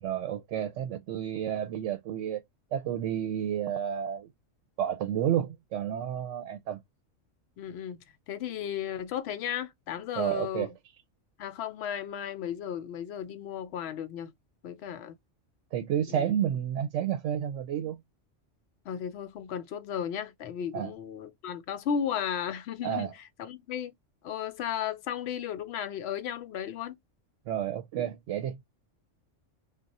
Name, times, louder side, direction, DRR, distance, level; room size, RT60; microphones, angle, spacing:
voice 1, 0.0-2.4 2.7-4.3 4.8-6.8 10.2-10.7 15.7-18.0 20.7-20.9 22.8-23.1 27.5-28.6, right 10 dB, 75° right, 0.9 m, -30 dB
voice 2, 7.6-10.7 11.4-14.3 14.6-15.2 16.1-16.3 18.9-23.1 23.4-23.9 24.2-27.0, left 8 dB, 65° left, 0.8 m, -35 dB
2.4 x 2.3 x 4.0 m
omnidirectional pair, 1.3 m